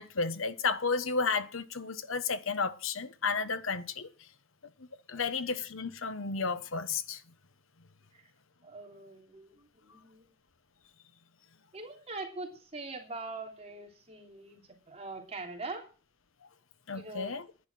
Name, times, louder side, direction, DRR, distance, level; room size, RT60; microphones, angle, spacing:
voice 1, 0.0-4.1 5.1-7.2 16.9-17.5, left 4 dB, 70° left, 1.2 m, -32 dB
voice 2, 8.6-10.3 11.7-14.6 14.9-15.8 16.9-17.3, right 3 dB, 30° right, 3.1 m, -43 dB
10.5 x 10.5 x 6.2 m
head